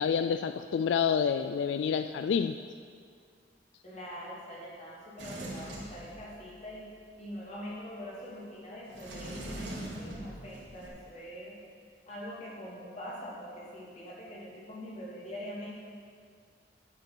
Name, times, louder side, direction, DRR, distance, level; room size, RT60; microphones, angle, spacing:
voice 1, 0.0-2.6, left 7 dB, 90° left, 10 dB, 0.3 m, -28 dB
voice 2, 3.8-6.9 7.1-11.5 12.1-15.7, equal, 40° left, -6 dB, 3.0 m, -43 dB
Sliding door, 5.2-6.7 8.9-10.9, right 1 dB, 85° right, 2.3 m, -42 dB
8.8 x 8.3 x 6.1 m, 2.1 s
head